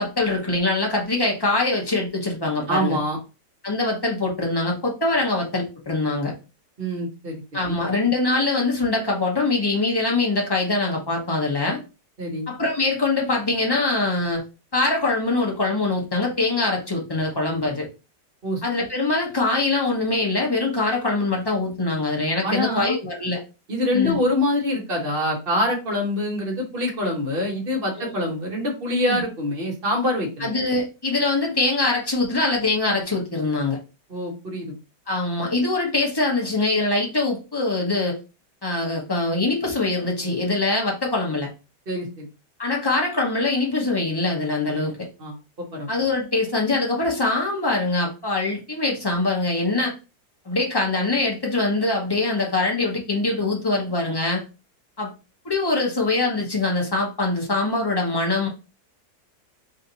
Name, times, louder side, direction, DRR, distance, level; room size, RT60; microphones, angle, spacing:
voice 1, 0.0-3.0 3.6-6.3 7.5-11.8 12.5-14.4 14.7-17.9 18.6-23.4 23.9-24.2 28.0-28.1 29.1-29.2 30.4-33.8 35.1-38.2 38.6-41.5 42.6-45.0 45.9-49.9 50.4-54.4 55.0-55.1 55.4-58.5, left 2 dB, 25° left, -1 dB, 0.5 m, -23 dB
voice 2, 2.7-3.2 6.8-7.4 7.7-7.8 12.2-12.5 18.4-18.6 22.4-23.0 23.7-30.5 34.1-34.7 41.9-42.3 45.2-45.9, left 1 dB, 35° right, 0 dB, 1.2 m, -25 dB
3.2 x 2.7 x 3.9 m, 0.30 s
omnidirectional pair, 1.9 m